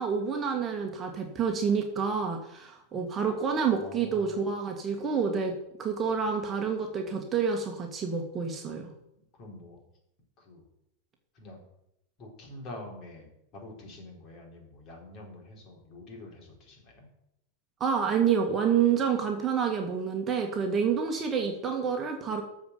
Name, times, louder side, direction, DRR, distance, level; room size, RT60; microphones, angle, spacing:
voice 1, 0.0-5.5 5.8-8.9 17.8-22.4, right 6 dB, 25° right, 2 dB, 1.7 m, -28 dB
voice 2, 3.8-4.4 9.4-9.8 10.4-10.6 11.3-11.6 12.2-17.1, left 1 dB, 35° left, 0 dB, 4.1 m, -46 dB
14.0 x 5.2 x 6.9 m, 0.82 s
figure-of-eight pair, 90°, 0 cm